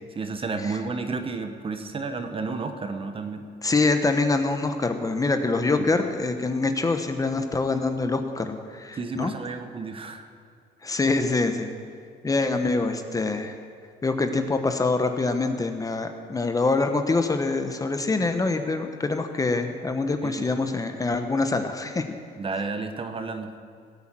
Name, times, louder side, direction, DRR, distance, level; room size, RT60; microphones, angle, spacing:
voice 1, 0.1-3.5 5.7-5.9 8.9-10.3 20.2-20.5 22.4-23.5, right 4 dB, 30° right, 7 dB, 1.2 m, -31 dB
voice 2, 3.6-9.3 10.8-11.7 12.2-13.5 14.0-22.1, left 3 dB, 20° left, 7 dB, 1.0 m, -25 dB
16.5 x 8.6 x 7.5 m, 2.2 s
cardioid pair, 110°, 17 cm